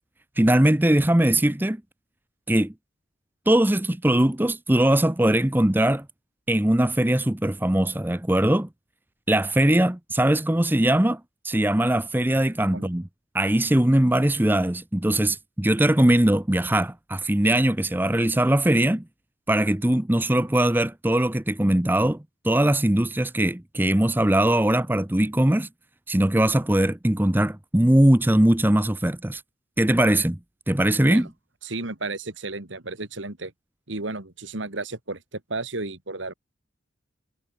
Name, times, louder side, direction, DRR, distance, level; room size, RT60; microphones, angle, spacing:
voice 1, 0.4-1.8 2.5-2.7 3.5-6.1 6.5-8.7 9.3-13.1 13.3-19.0 19.5-22.2 22.4-25.7 26.1-29.4 29.8-30.4 30.7-31.3, right 1 dB, 10° right, 0.7 m, -21 dB
voice 2, 31.6-33.5 33.9-36.3, right 3 dB, 75° right, 2.5 m, -33 dB
head